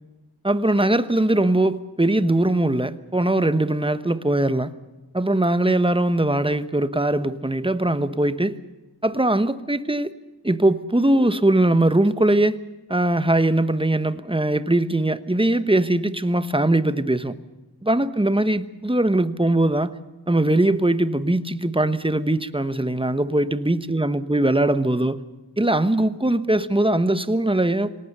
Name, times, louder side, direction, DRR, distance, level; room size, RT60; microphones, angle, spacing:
voice 1, 0.4-4.7 5.1-8.6 9.0-10.1 10.4-12.6 12.9-17.4 17.8-19.9 20.3-25.2 25.6-27.9, right 1 dB, 10° right, 1.2 m, -21 dB
26.5 x 18.5 x 6.7 m
wide cardioid pair, 75°, 43 cm